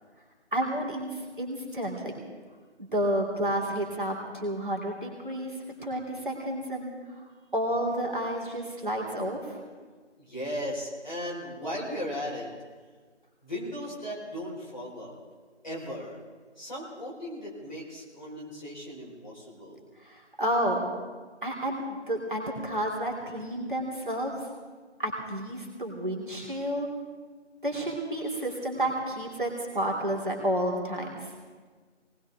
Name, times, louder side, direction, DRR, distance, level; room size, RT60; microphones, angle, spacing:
voice 1, 0.5-2.1 2.8-5.5 5.8-6.9 7.5-9.6 20.0-20.9 21.4-24.3 25.0-26.9 27.6-31.3, right 1 dB, 45° right, -1 dB, 2.8 m, -30 dB
voice 2, 10.2-12.5 13.4-15.1 15.6-16.2 16.6-19.8, equal, 40° left, -4 dB, 4.3 m, -37 dB
20.5 x 19.0 x 3.5 m, 1.5 s
figure-of-eight pair, 170°, 35 cm